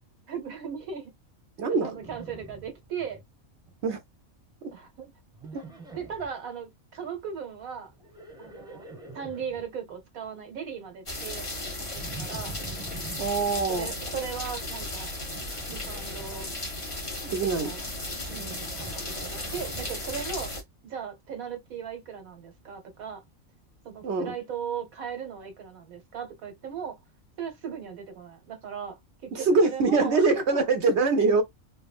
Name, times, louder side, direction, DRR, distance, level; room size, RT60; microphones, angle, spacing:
voice 1, 0.3-1.1 1.8-3.2 4.7-5.1 5.6-7.9 8.4-8.9 9.1-11.5 11.8-12.5 13.4-15.1 15.7-16.5 17.4-17.8 18.3-20.5 20.8-23.2 23.8-27.0 27.4-30.6, right 7 dB, 90° right, 1.5 m, -38 dB
voice 2, 1.6-1.9 3.8-4.0 5.5-5.6 13.2-14.0 17.3-17.7 24.0-24.3 29.3-31.4, right 4 dB, 60° right, 0.8 m, -23 dB
Livestock farm animals working animals, 2.0-3.2 3.5-4.0 5.3-6.3 7.9-9.7 12.0-13.3 15.3-16.4 18.2-20.0, right 3 dB, 5° right, 0.8 m, -45 dB
sound 1, 11.1-20.6, left 1 dB, 25° left, 0.9 m, -35 dB
3.6 x 2.0 x 2.3 m
omnidirectional pair, 1.4 m